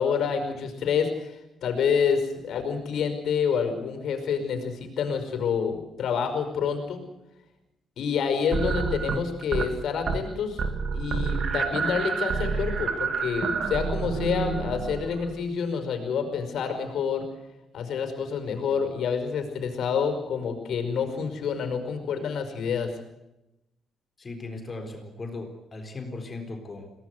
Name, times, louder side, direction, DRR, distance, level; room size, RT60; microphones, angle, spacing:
voice 1, 0.0-7.0 8.0-10.6 10.9-17.3 17.7-22.9, left 6 dB, 70° left, 7 dB, 5.3 m, -28 dB
sound 1, 8.5-9.7 10.0-10.3 10.6-15.3, right 5 dB, 55° right, 2.4 m, -28 dB
voice 2, 24.2-26.9, left 2 dB, 30° left, 5 dB, 4.0 m, -37 dB
22.0 x 18.0 x 8.0 m, 0.90 s
cardioid pair, 90°, 0 cm